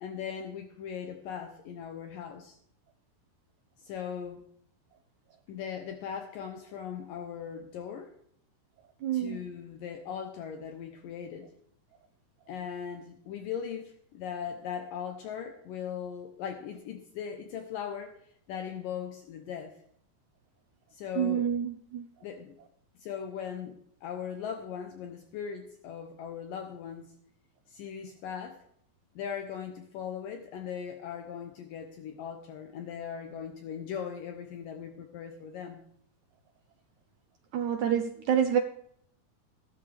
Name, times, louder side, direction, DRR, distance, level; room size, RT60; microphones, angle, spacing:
voice 1, 0.0-2.6 3.8-4.4 5.5-8.1 9.1-11.5 12.5-18.2 18.5-19.8 20.9-21.5 22.2-22.5 23.0-23.8 24.0-27.1 27.7-28.6 29.2-35.8, left 8 dB, 70° left, 5 dB, 2.4 m, -39 dB
voice 2, 9.0-9.4 21.2-22.0 37.5-38.6, right 8 dB, 85° right, 7 dB, 1.7 m, -27 dB
15.5 x 13.0 x 3.5 m, 0.68 s
omnidirectional pair, 4.4 m